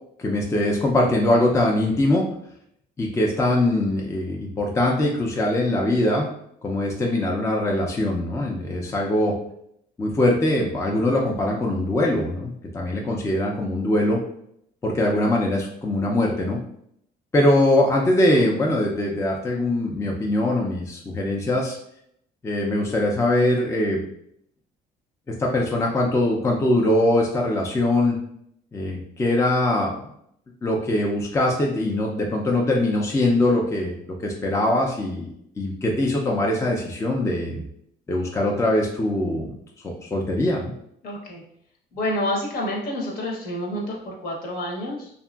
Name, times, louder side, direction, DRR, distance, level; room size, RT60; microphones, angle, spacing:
voice 1, 0.2-2.2 3.0-6.2 6.6-9.3 10.0-14.2 14.8-16.6 17.3-21.8 22.4-24.0 25.4-28.2 28.7-29.9 30.6-37.6 38.1-39.5 40.1-40.7, left 1 dB, 15° left, 0 dB, 0.4 m, -22 dB
voice 2, 41.0-41.4 41.9-45.1, left 1 dB, 60° left, -1 dB, 0.9 m, -28 dB
2.8 x 2.5 x 2.3 m, 0.71 s
cardioid pair, 110°, 17 cm